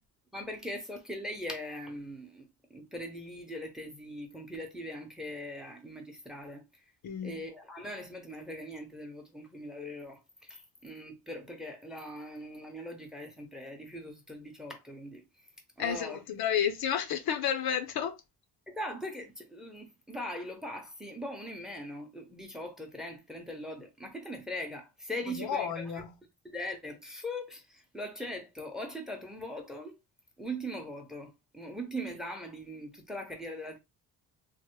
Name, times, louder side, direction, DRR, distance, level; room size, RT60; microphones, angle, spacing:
voice 1, 0.3-6.6 7.2-15.2 15.8-16.2 18.7-26.0 26.4-29.9 30.4-33.8, equal, ahead, 0.7 m, -41 dB
voice 2, 7.0-7.4 15.8-18.2 25.3-26.1, left 8 dB, 65° left, 0.6 m, -31 dB
3.2 x 2.1 x 3.0 m
cardioid pair, 110°, 40 cm